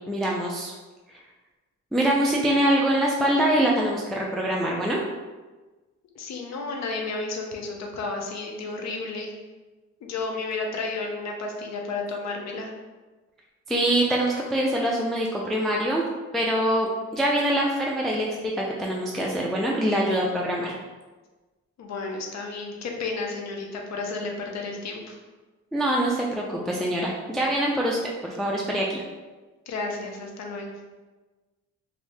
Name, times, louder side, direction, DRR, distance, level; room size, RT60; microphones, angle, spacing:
voice 1, 0.1-0.7 1.9-5.0 13.7-16.0 16.3-20.7 25.7-29.0, right 1 dB, ahead, -3 dB, 0.3 m, -24 dB
voice 2, 6.1-9.3 10.0-12.7 21.8-25.2 29.7-30.7, left 3 dB, 60° left, 1 dB, 0.7 m, -32 dB
2.7 x 2.6 x 3.2 m, 1.2 s
cardioid pair, 90°, 30 cm